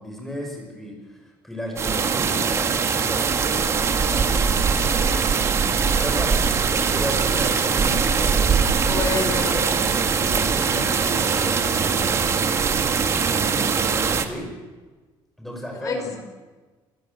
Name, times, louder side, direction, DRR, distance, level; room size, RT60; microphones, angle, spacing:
voice 1, 0.0-3.3 3.9-5.2 5.7-6.4 6.8-9.4 10.0-12.6 12.9-14.5 15.4-16.2, equal, 5° left, 1 dB, 6.0 m, -35 dB
sound 1, 1.8-14.3, right 6 dB, 30° right, 1.6 m, -21 dB
voice 2, 8.9-9.8 15.8-16.2, left 5 dB, 40° left, 5 dB, 4.7 m, -28 dB
27.5 x 15.0 x 8.1 m, 1.3 s
cardioid pair, 170°, 9 cm